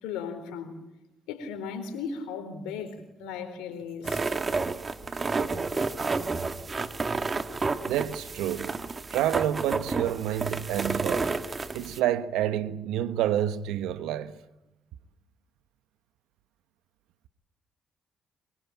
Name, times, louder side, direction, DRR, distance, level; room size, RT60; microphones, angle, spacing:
voice 1, 0.0-0.8 1.3-4.2, left 6 dB, 85° left, 4.2 m, -36 dB
sound 1, 4.0-12.0, right 4 dB, 40° right, 1.9 m, -30 dB
voice 2, 7.9-8.7 9.1-11.3 11.7-14.4, right 11 dB, 80° right, 1.2 m, -28 dB
24.0 x 22.5 x 8.7 m
supercardioid pair, 50°, 0 cm